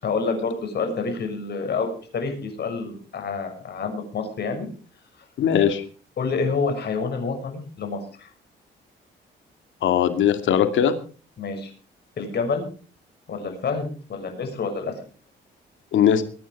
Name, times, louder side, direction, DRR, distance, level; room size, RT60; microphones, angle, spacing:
voice 1, 0.0-4.7 6.2-8.3 11.4-11.7 12.2-12.6 13.3-14.9, left 4 dB, 55° left, 5 dB, 6.3 m, -28 dB
voice 2, 5.4-5.8 9.8-10.9 15.9-16.2, left 9 dB, 75° left, 8 dB, 2.5 m, -19 dB
22.5 x 9.7 x 4.8 m, 0.39 s
cardioid pair, 90°, 20 cm